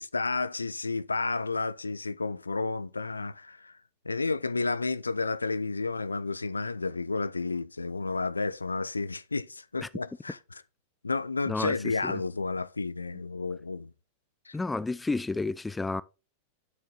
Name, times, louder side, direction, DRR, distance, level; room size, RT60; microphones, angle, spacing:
voice 1, 0.0-3.7 4.1-10.4 11.0-13.9 14.5-14.6, left 3 dB, 80° left, 0.4 m, -31 dB
voice 2, 14.5-16.0, left 3 dB, 10° left, 0.4 m, -31 dB
9.1 x 6.3 x 3.8 m
figure-of-eight pair, 90°, 0 cm